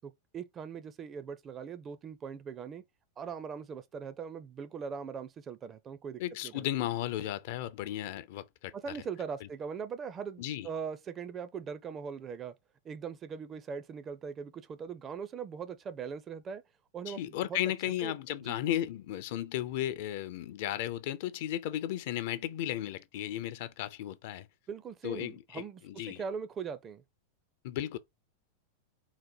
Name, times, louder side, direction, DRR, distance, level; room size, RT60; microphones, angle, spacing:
voice 1, 0.0-2.8 3.2-6.6 8.7-12.5 12.8-16.6 16.9-17.6 18.0-18.1 18.4-18.6 24.7-27.0, right 6 dB, 25° right, 0.4 m, -40 dB
voice 2, 6.2-8.7 10.4-10.7 17.1-24.5 25.0-26.2 27.6-28.0, left 12 dB, 50° left, 0.4 m, -35 dB
3.9 x 2.1 x 4.4 m
figure-of-eight pair, 90°, 0 cm